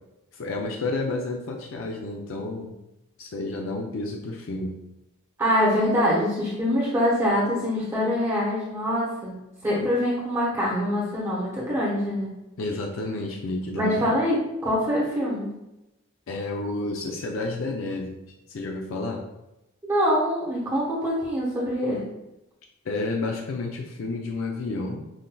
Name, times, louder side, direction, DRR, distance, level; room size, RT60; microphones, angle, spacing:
voice 1, 0.3-2.8 3.2-4.7 12.6-14.1 16.3-18.2 18.5-19.2 22.8-25.0, left 2 dB, 80° left, 1 dB, 0.4 m, -30 dB
voice 2, 5.4-9.4 9.6-12.3 13.7-15.5 19.8-22.0, equal, 15° right, -8 dB, 1.0 m, -24 dB
5.7 x 2.5 x 2.2 m, 0.93 s
head